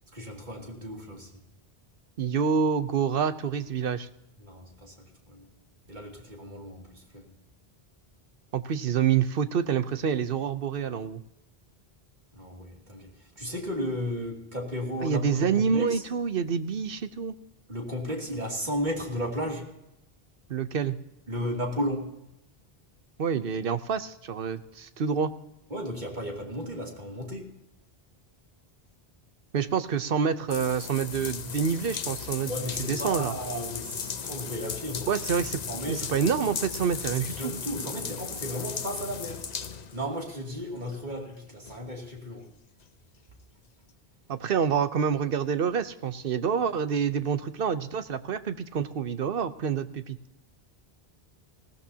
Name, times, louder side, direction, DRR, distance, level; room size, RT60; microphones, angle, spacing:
voice 1, 0.1-1.3 4.4-5.5 5.9-7.3 12.3-16.0 17.7-19.7 21.3-22.1 25.7-27.5 32.5-35.3 35.7-36.3 37.1-39.5 39.9-42.5, equal, 50° right, 0 dB, 2.8 m, -34 dB
voice 2, 2.2-4.1 8.5-11.2 15.0-17.3 20.5-21.0 23.2-25.3 29.5-32.5 32.9-33.3 35.1-35.6 35.9-37.5 44.3-50.2, right 7 dB, 65° right, 12 dB, 0.9 m, -27 dB
sound 1, 30.5-40.4 40.9-41.0 41.7-41.8, left 6 dB, 45° left, 0.8 m, -36 dB
19.5 x 16.0 x 2.8 m, 0.85 s
omnidirectional pair, 1.0 m